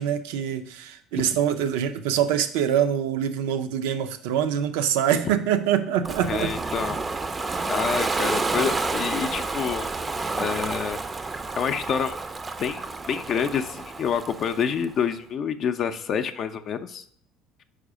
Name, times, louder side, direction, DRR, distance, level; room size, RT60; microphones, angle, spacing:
voice 1, 0.0-6.5, right 9 dB, 80° right, 10 dB, 0.5 m, -24 dB
Ocean, 6.0-14.9, right 3 dB, 25° right, 0.4 m, -29 dB
voice 2, 6.3-7.0 7.7-9.9 10.3-11.2 11.6-12.1 12.6-17.0, left 7 dB, 50° left, 8 dB, 0.5 m, -28 dB
4.9 x 4.7 x 4.9 m, 0.62 s
hypercardioid pair, 75°, 0 cm